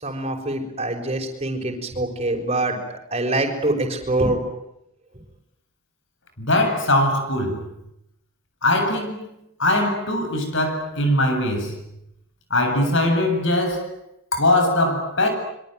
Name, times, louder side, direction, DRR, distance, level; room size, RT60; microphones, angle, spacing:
voice 1, 0.0-2.8 3.1-4.4, right 2 dB, 25° right, 5.9 m, -24 dB
voice 2, 6.4-7.7 8.6-9.3 9.6-11.7 12.5-13.9 14.3-15.3, left 1 dB, 55° left, 7.8 m, -21 dB
26.5 x 24.0 x 9.3 m
head